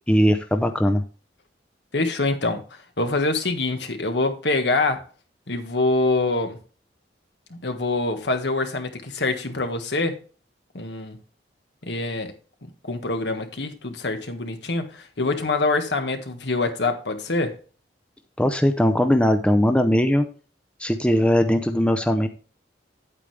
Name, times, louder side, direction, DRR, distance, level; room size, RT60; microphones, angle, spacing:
voice 1, 0.1-1.0 18.4-20.3 20.8-22.3, equal, 5° left, 7 dB, 0.6 m, -19 dB
voice 2, 1.9-5.0 5.5-6.6 7.5-10.2 10.7-11.2 11.8-12.3 12.8-17.5, left 2 dB, 75° left, 7 dB, 1.5 m, -25 dB
9.3 x 8.5 x 3.4 m, 0.38 s
head